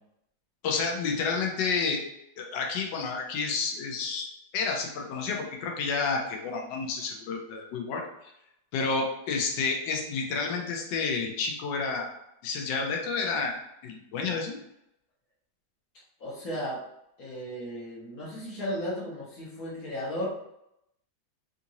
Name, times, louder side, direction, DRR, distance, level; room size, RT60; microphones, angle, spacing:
voice 1, 0.6-2.0 2.4-4.3 4.5-8.0 8.7-12.1 12.4-13.6 13.8-14.6, left 4 dB, 80° left, 1 dB, 1.3 m, -30 dB
voice 2, 16.2-16.8 17.2-20.3, equal, 60° left, -6 dB, 1.4 m, -35 dB
3.7 x 2.6 x 2.8 m, 0.81 s
omnidirectional pair, 1.9 m